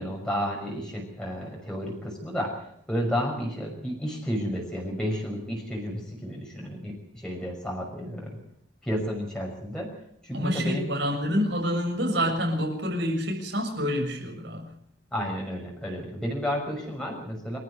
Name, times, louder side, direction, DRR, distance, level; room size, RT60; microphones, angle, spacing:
voice 1, 0.0-2.5 2.9-8.4 8.8-9.9 10.2-10.8 15.1-17.6, equal, 5° left, -2 dB, 6.0 m, -31 dB
voice 2, 10.3-14.7, equal, 60° right, 3 dB, 6.9 m, -27 dB
27.0 x 14.0 x 8.1 m, 0.69 s
head